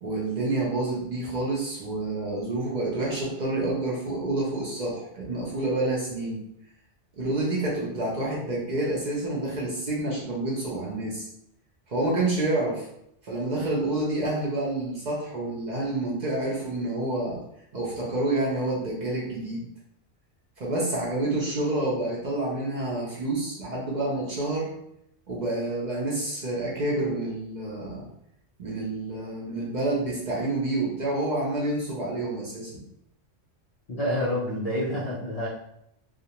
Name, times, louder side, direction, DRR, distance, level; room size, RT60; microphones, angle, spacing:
voice 1, 0.0-6.4 7.1-11.3 11.9-12.9 13.2-17.4 17.7-19.6 20.6-24.7 25.3-28.1 28.6-32.8, right 2 dB, 50° right, -4 dB, 0.6 m, -28 dB
voice 2, 33.9-35.5, left 1 dB, 90° left, -4 dB, 0.3 m, -28 dB
2.4 x 2.1 x 2.8 m, 0.76 s
omnidirectional pair, 1.3 m